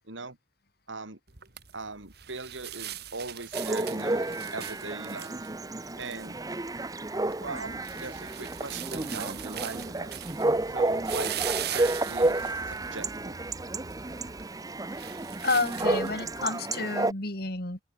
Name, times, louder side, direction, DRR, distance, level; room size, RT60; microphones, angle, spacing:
voice 1, 0.0-0.4 0.9-1.2 1.7-5.5 6.0-6.4 7.4-10.1 10.7-13.4, right 3 dB, 75° right, 2.7 m, -40 dB
sound 1, 1.3-16.5, right 10 dB, 55° right, 2.1 m, -41 dB
Chatter / Bark / Livestock farm animals working animals, 3.5-17.1, right 2 dB, 20° right, 0.6 m, -31 dB
voice 2, 15.4-17.8, left 3 dB, 50° left, 3.2 m, -30 dB
open air
head